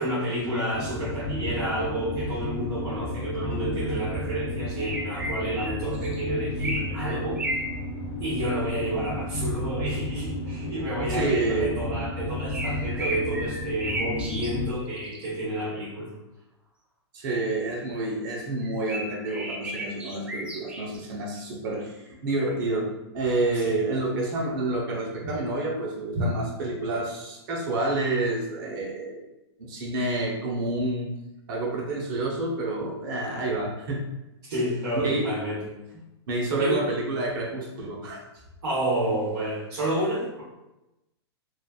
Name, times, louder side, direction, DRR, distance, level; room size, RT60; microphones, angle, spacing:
voice 1, 0.0-7.4 8.2-16.1 23.5-23.7 34.5-35.6 36.6-36.8 38.6-40.4, right 1 dB, 65° right, -9 dB, 1.1 m, -30 dB
sound 1, 0.7-14.7, left 1 dB, 45° left, 0.8 m, -32 dB
sound 2, 4.8-6.2 6.6-7.7 12.5-14.5 15.0-15.2 18.6-21.0, right 1 dB, 10° right, 0.3 m, -33 dB
voice 2, 11.1-11.7 17.1-29.2 29.6-31.1 31.5-34.0 35.0-35.3 36.3-38.2, right 2 dB, 50° right, -1 dB, 0.9 m, -28 dB
3.2 x 2.5 x 2.4 m, 0.95 s
hypercardioid pair, 135°, 14 cm